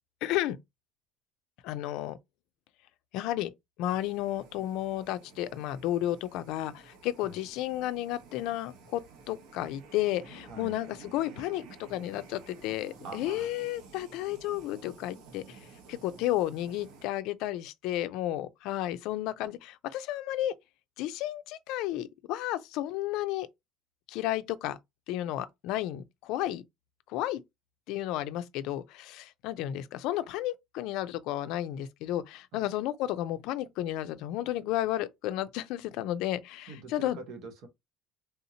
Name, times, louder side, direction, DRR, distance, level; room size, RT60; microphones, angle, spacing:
voice 1, 0.2-0.6 1.6-2.2 3.1-3.5 3.8-15.6 15.9-20.5 21.0-23.5 24.1-24.8 25.1-26.6 27.1-27.4 27.9-37.2, left 14 dB, 65° left, 0.4 m, -32 dB
sound 1, 3.8-17.1, right 5 dB, 80° right, 0.9 m, -53 dB
voice 2, 13.0-13.5 32.5-32.6 36.7-37.7, right 3 dB, 55° right, 1.0 m, -44 dB
3.5 x 2.8 x 2.7 m
cardioid pair, 155°, 0 cm